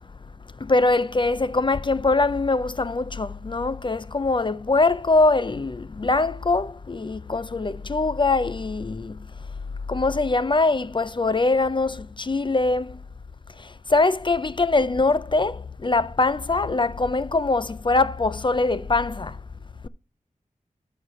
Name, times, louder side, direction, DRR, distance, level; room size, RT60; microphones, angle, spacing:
voice 1, 0.6-9.3 9.9-13.0 13.6-19.4, left 3 dB, 35° left, 0.4 m, -23 dB
11.0 x 7.0 x 3.0 m
wide cardioid pair, 50°, 14 cm